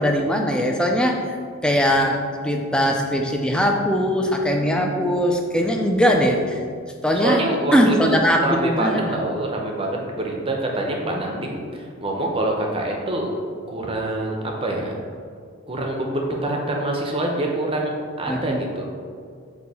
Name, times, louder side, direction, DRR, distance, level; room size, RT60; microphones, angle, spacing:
voice 1, 0.0-1.4 1.6-6.6 7.0-7.4 7.7-9.2 11.0-11.2 18.3-18.6, equal, 5° left, 1 dB, 0.4 m, -20 dB
voice 2, 7.2-13.3 13.7-15.0 15.7-18.8, right 1 dB, 25° right, 0 dB, 0.7 m, -25 dB
8.3 x 2.8 x 4.1 m, 2.1 s
head